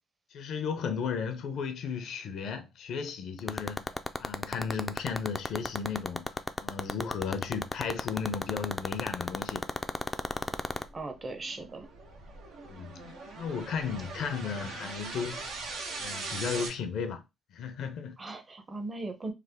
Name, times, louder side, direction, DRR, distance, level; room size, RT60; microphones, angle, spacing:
voice 1, 0.3-3.9 4.2-9.7 12.7-13.0 13.4-15.4 16.0-17.2 17.5-18.2, left 6 dB, 75° left, 0.6 m, -35 dB
sound 1, 3.4-10.8, left 2 dB, 15° left, 0.3 m, -30 dB
sound 2, 9.7-16.7, right 3 dB, 85° right, 0.9 m, -41 dB
voice 2, 10.9-11.9 18.2-19.3, right 2 dB, 30° right, 0.7 m, -38 dB
3.3 x 2.1 x 3.5 m
cardioid pair, 90°, 0 cm